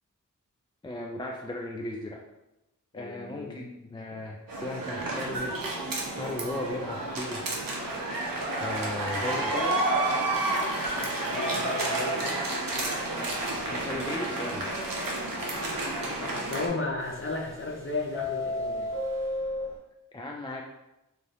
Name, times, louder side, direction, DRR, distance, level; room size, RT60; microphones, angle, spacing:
voice 1, 0.8-2.2 2.9-5.6 6.2-7.4 8.6-9.8 13.7-14.7 20.1-20.6, left 2 dB, 15° left, 0 dB, 0.3 m, -36 dB
voice 2, 2.9-3.6 4.1-4.3 10.9-12.4 15.6-18.9, left 3 dB, 40° left, -1 dB, 0.7 m, -35 dB
sound 1, 4.5-16.7, right 2 dB, 90° right, 0.6 m, -30 dB
Subway metro underground, 13.0-13.1 13.5-13.6 13.9-14.0 14.5-14.6 17.0-17.7 18.0-19.7, left 2 dB, 10° right, 0.9 m, -32 dB
2.7 x 2.5 x 3.3 m, 0.93 s
cardioid pair, 40°, 33 cm